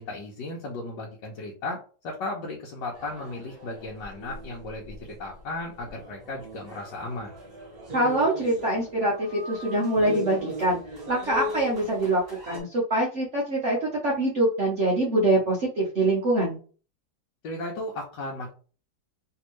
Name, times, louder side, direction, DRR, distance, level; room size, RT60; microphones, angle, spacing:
voice 1, 0.0-7.3 17.4-18.5, left 2 dB, 80° left, -2 dB, 1.4 m, -35 dB
sound 1, 2.9-12.6, equal, 25° right, 1.6 m, -39 dB
voice 2, 7.9-10.8 11.1-16.6, right 1 dB, 50° right, -5 dB, 1.0 m, -24 dB
3.4 x 2.9 x 3.0 m, 0.38 s
omnidirectional pair, 1.9 m